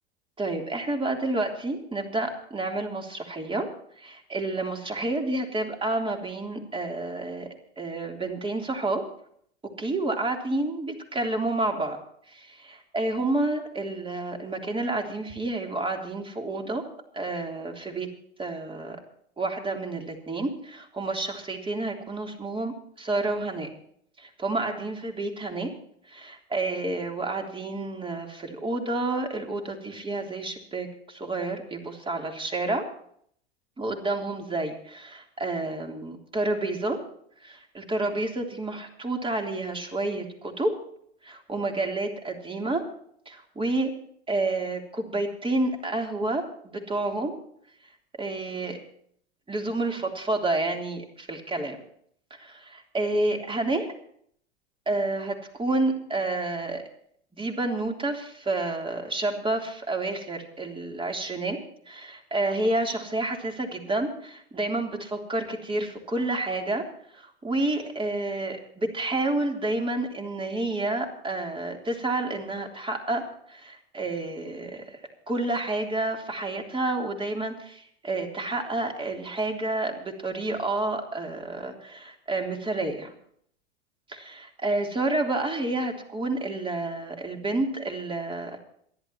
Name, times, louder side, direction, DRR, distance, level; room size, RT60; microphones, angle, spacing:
voice 1, 0.4-3.7 4.0-7.5 7.8-9.0 9.8-12.0 12.3-16.8 17.1-18.1 18.4-19.0 19.4-23.7 24.2-25.7 26.1-32.9 33.8-37.0 37.4-40.7 41.2-42.8 43.2-43.9 44.3-47.4 48.2-48.8 49.5-51.8 52.4-53.9 54.8-56.8 57.3-61.6 61.9-66.8 67.1-75.0 75.3-83.1 84.1-88.6, right 2 dB, 15° right, 2 dB, 3.4 m, -29 dB
27.5 x 11.5 x 3.0 m, 0.64 s
hypercardioid pair, 95°, 32 cm